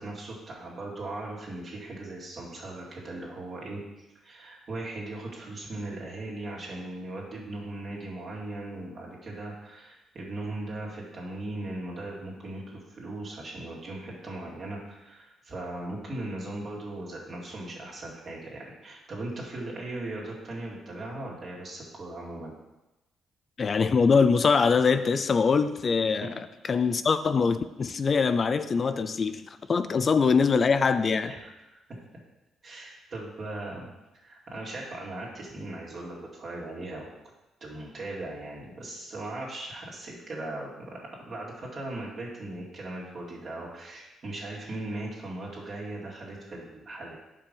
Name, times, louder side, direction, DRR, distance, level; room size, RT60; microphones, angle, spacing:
voice 1, 0.0-22.5 31.2-31.8 32.6-33.9 34.1-37.1 37.6-47.2, right 2 dB, 50° right, -4 dB, 2.2 m, -38 dB
voice 2, 23.6-26.3 26.7-31.3, left 5 dB, 40° left, 11 dB, 0.3 m, -23 dB
5.5 x 5.1 x 5.3 m, 1.0 s
cardioid pair, 90°, 0 cm